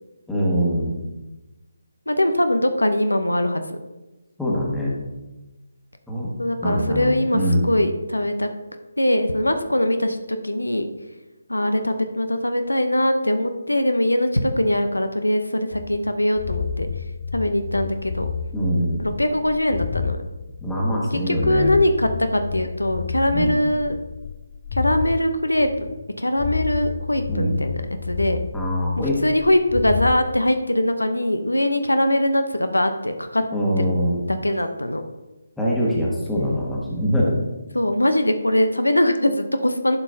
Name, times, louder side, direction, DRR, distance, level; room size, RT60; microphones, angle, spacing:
voice 1, 0.3-1.0 4.4-4.9 6.1-6.3 6.6-7.7 18.5-19.0 20.6-21.7 23.3-23.6 27.3-27.5 28.5-29.2 33.5-34.2 35.6-37.4, equal, 5° left, -5 dB, 1.5 m, -23 dB
voice 2, 2.1-3.8 6.4-8.5 9.0-10.9 11.5-16.9 17.3-18.3 19.0-20.2 21.3-24.0 24.7-28.4 29.0-33.5 33.8-33.9 34.3-35.0 37.7-40.0, left 1 dB, 90° left, 7 dB, 0.7 m, -22 dB
sound 1, 15.7-20.2 20.5-25.2 25.6-26.1 26.4-30.2, left 6 dB, 35° left, 0.4 m, -31 dB
11.0 x 5.6 x 2.7 m, 1.1 s
figure-of-eight pair, 150°, 0 cm